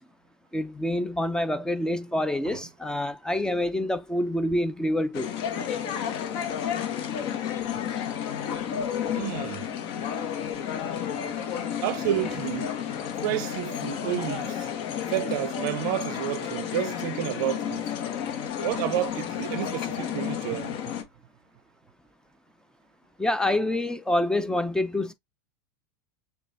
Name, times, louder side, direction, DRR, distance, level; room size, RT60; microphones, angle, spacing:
voice 1, 0.5-5.3 23.2-25.1, left 1 dB, 5° left, 0.5 m, -27 dB
sound 1, 5.1-21.0, left 9 dB, 55° left, 1.0 m, -31 dB
voice 2, 9.1-9.6 11.8-12.8 13.2-14.7 15.1-17.8 18.6-20.8, right 14 dB, 65° right, 0.4 m, -30 dB
6.3 x 2.3 x 2.6 m
hypercardioid pair, 110°, 12 cm